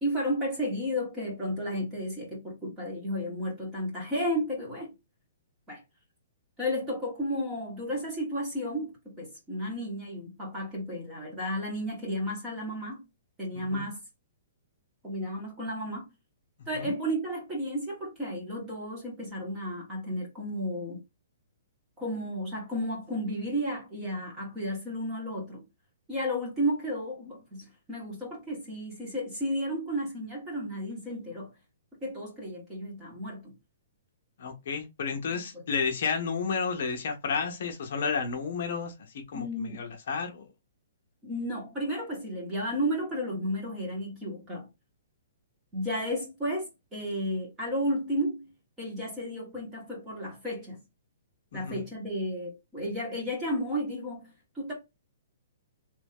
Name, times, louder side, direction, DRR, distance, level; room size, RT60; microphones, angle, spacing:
voice 1, 0.0-4.9 5.7-5.8 6.6-13.0 13.4-14.0 15.0-16.1 16.7-21.0 22.0-25.6 26.1-31.5 32.0-33.5 35.3-35.4 39.3-39.8 41.2-44.7 45.7-48.5 48.8-50.8 51.5-54.3 54.5-54.7, equal, 10° right, 1.3 m, -33 dB
voice 2, 13.5-13.9 16.7-16.9 34.4-40.4 51.5-51.8, left 5 dB, 50° left, 0.7 m, -32 dB
3.1 x 2.6 x 3.5 m
hypercardioid pair, 175°, 0 cm